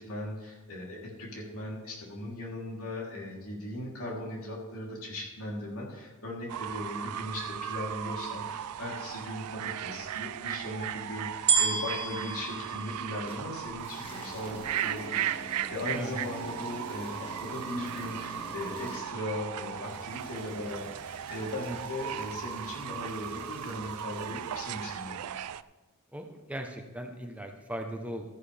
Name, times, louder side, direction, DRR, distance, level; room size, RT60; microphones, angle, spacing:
voice 1, 0.0-25.2, left 1 dB, 70° left, -3 dB, 3.2 m, -38 dB
Fowl / Bird, 6.5-25.6, right 10 dB, 85° right, 0.4 m, -37 dB
sound 1, 11.5-13.9 14.5-14.6, right 6 dB, 50° right, 1.5 m, -29 dB
sound 2, 13.3-25.0, left 1 dB, 25° left, 1.8 m, -48 dB
voice 2, 26.1-28.3, right 1 dB, 5° right, 3 dB, 0.8 m, -38 dB
13.5 x 10.5 x 3.4 m, 1.2 s
head